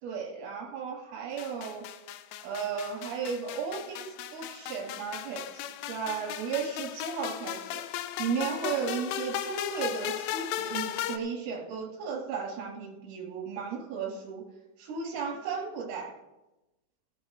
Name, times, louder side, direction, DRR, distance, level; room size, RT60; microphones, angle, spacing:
voice 1, 0.0-1.8 2.4-7.8 8.2-14.4 14.8-16.1, right 6 dB, 75° right, -1 dB, 5.6 m, -35 dB
sound 1, 1.4-11.2, left 11 dB, 85° left, 2.9 m, -36 dB
17.5 x 15.5 x 2.4 m, 1.0 s
omnidirectional pair, 6.0 m